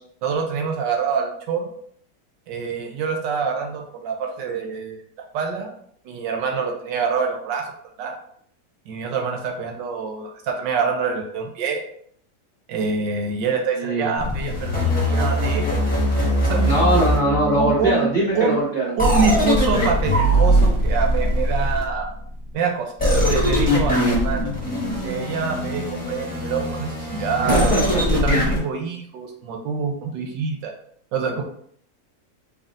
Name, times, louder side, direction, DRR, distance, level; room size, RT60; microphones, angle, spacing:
voice 1, 0.2-1.7 2.5-5.0 5.3-5.7 6.0-7.7 8.0-8.2 8.9-11.8 12.7-15.8 16.4-16.8 17.4-18.0 18.3-18.6 19.0-22.1 22.5-22.9 23.3-24.5 25.0-27.8 28.1-30.7 31.1-31.4, right 5 dB, 85° right, 3 dB, 1.4 m, -25 dB
voice 2, 13.8-14.2 16.6-19.0 27.4-28.0, right 1 dB, 35° right, -6 dB, 0.8 m, -21 dB
sound 1, 14.2-17.9 19.0-22.1 23.0-28.6, equal, 5° left, 1.1 m, -21 dB
4.0 x 3.5 x 2.5 m, 0.63 s
omnidirectional pair, 1.9 m